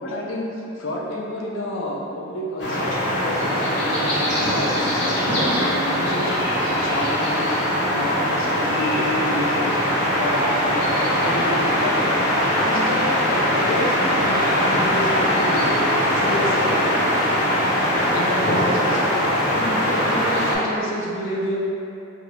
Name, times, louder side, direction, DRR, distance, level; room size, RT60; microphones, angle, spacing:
voice 1, 0.0-7.5 7.8-12.0 12.6-17.1 18.1-19.1 19.4-21.6, left 1 dB, 85° left, -3 dB, 0.6 m, -29 dB
sound 1, 2.6-20.5, equal, 65° left, 1.0 m, -21 dB
3.2 x 2.6 x 4.5 m, 2.7 s
head